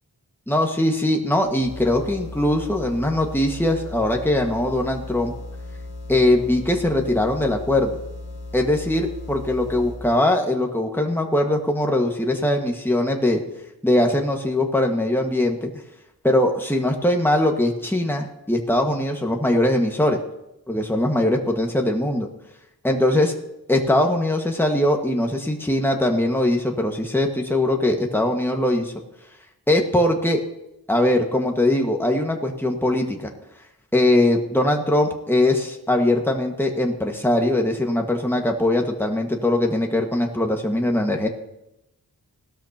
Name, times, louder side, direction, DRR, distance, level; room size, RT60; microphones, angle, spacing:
voice 1, 0.5-5.3 6.1-7.9 8.5-13.4 13.8-15.7 16.2-20.2 20.7-22.3 22.8-23.3 23.7-28.9 29.7-30.4 30.9-33.3 33.9-41.3, left 1 dB, 5° left, 2 dB, 1.6 m, -21 dB
sound 1, 1.5-10.2, left 2 dB, 85° left, 1.6 m, -36 dB
17.5 x 12.5 x 2.9 m, 0.89 s
wide cardioid pair, 55°, 38 cm